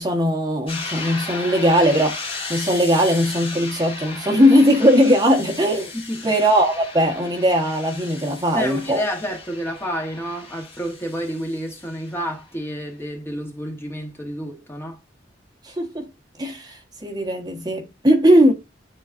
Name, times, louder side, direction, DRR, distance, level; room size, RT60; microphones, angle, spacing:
voice 1, 0.0-5.9 6.2-9.0 15.6-16.1 16.4-18.5, equal, 20° right, 1.3 m, -19 dB
sound 1, 0.7-12.3, left 3 dB, 30° left, 2.0 m, -35 dB
voice 2, 5.9-6.4 8.5-15.0, equal, 15° left, 1.2 m, -29 dB
9.6 x 3.9 x 2.6 m
head